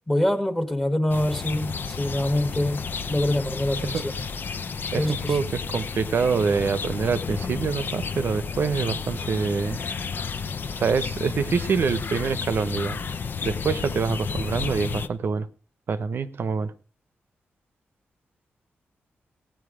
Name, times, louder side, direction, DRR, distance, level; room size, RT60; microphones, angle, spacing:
voice 1, 0.1-4.2 4.9-5.4, left 1 dB, 10° left, 1.4 m, -25 dB
sound 1, 1.1-15.1, left 5 dB, 55° left, 0.7 m, -32 dB
voice 2, 4.9-9.8 10.8-13.0 13.4-15.5 15.9-16.7, right 5 dB, 60° right, 0.8 m, -25 dB
16.5 x 9.2 x 5.0 m
wide cardioid pair, 110°, 4 cm